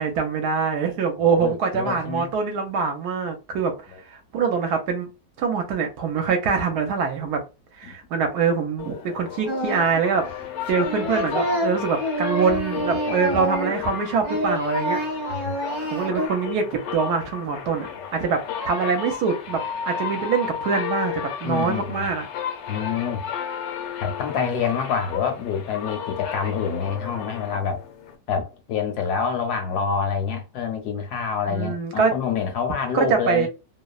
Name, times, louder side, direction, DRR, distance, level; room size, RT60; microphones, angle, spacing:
voice 1, 0.0-3.7 4.1-5.1 5.4-7.4 7.8-10.2 10.7-15.0 15.9-17.9 18.1-19.6 19.9-22.3 31.5-32.1 32.9-33.5, right 5 dB, 70° right, 1.1 m, -24 dB
voice 2, 1.2-2.3 3.9-4.0 7.8-7.9 11.0-11.4 13.1-13.4 15.3-15.5 21.4-22.1 22.7-23.2 24.0-27.8 28.3-33.5, left 6 dB, 75° left, 1.0 m, -27 dB
sound 1, 8.8-28.2, left 7 dB, 90° left, 1.3 m, -33 dB
Singing, 9.5-10.0 10.3-13.9 14.2-16.3, equal, 35° right, 0.8 m, -27 dB
3.0 x 2.0 x 2.3 m
omnidirectional pair, 1.9 m